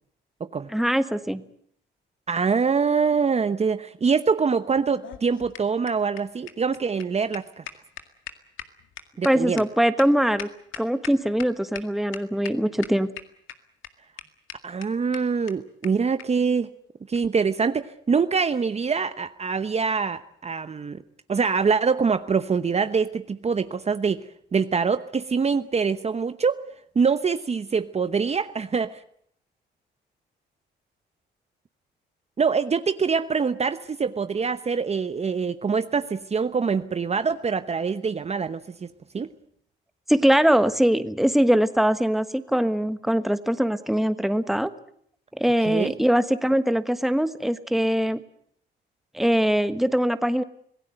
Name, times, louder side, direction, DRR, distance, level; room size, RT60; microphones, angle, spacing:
voice 1, 0.7-1.4 9.2-10.5 10.8-13.1 40.1-44.7 45.4-48.2 49.1-50.4, equal, ahead, 11 dB, 1.4 m, -22 dB
voice 2, 2.3-7.6 9.2-9.6 14.6-16.7 17.1-21.0 21.3-24.2 24.5-26.6 26.9-29.0 32.4-38.9 39.1-39.3 45.7-45.9, right 5 dB, 35° right, 11 dB, 1.0 m, -24 dB
sound 1, 4.8-11.5 11.7-11.8 12.1-12.5 12.8-13.5 13.8-13.9 14.2-14.3 14.5-14.6 14.8-14.9 15.1-15.2 15.5-15.6 15.8-15.9 16.2-16.3 17.1-17.3, left 10 dB, 80° left, 2.0 m, -39 dB
26.0 x 17.5 x 7.9 m, 0.66 s
cardioid pair, 90°, 20 cm